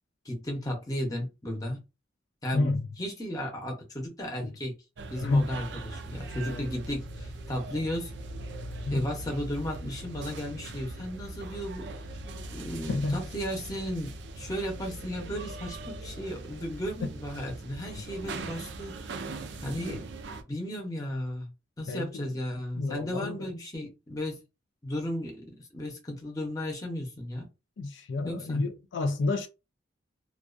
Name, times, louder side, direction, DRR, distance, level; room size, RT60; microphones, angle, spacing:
voice 1, 0.2-1.8 2.4-4.8 5.1-8.1 8.9-11.9 12.5-19.3 19.6-20.1 20.5-21.5 21.8-24.4 24.8-27.5 28.2-28.6, equal, 20° left, 0.7 m, -35 dB
voice 2, 2.5-2.9 4.4-4.5 5.2-5.5 6.4-6.6 8.9-9.1 12.9-13.2 19.9-20.0 21.9-22.3 22.7-23.5 27.8-29.5, left 2 dB, 75° left, 0.4 m, -30 dB
sound 1, 5.0-20.4, right 2 dB, 65° right, 0.4 m, -40 dB
2.3 x 2.3 x 2.4 m
head